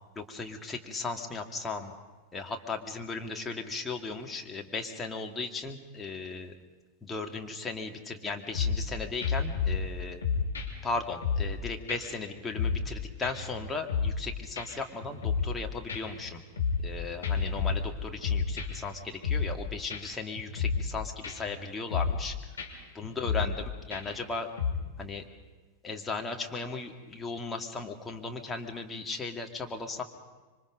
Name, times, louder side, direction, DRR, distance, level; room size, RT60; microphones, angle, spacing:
voice 1, 0.2-1.9 2.3-6.5 7.0-10.2 10.8-16.4 16.8-22.4 22.9-23.5 23.8-24.5 25.0-25.2 25.8-30.0, left 3 dB, 15° left, 2 dB, 2.2 m, -36 dB
sound 1, 8.5-8.9 9.2-9.9 10.2-11.6 11.9-12.0 12.3-12.9 13.2-14.3 14.6-14.7 15.0-15.6 15.9-16.9 17.2-18.9 19.2-19.6 19.9-20.0 20.4-20.9 21.2-21.6 21.9-22.3 22.6-22.7 23.0-23.6 23.9-24.2 24.6-24.7, left 5 dB, 70° left, 3.4 m, -30 dB
26.5 x 24.5 x 5.3 m, 1.2 s
figure-of-eight pair, 90°, 0 cm